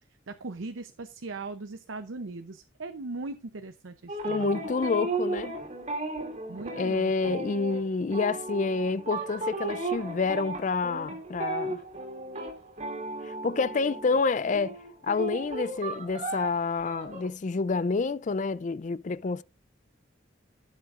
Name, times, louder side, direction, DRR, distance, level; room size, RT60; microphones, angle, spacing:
voice 1, 0.3-4.6 6.5-7.4, right 3 dB, 90° right, 0.7 m, -39 dB
sound 1, 4.1-14.3 14.5-17.3, right 2 dB, 35° right, 2.5 m, -35 dB
voice 2, 4.2-5.6 6.7-11.8 13.2-14.8 15.0-19.4, left 4 dB, 40° left, 0.4 m, -28 dB
16.0 x 7.4 x 2.5 m
head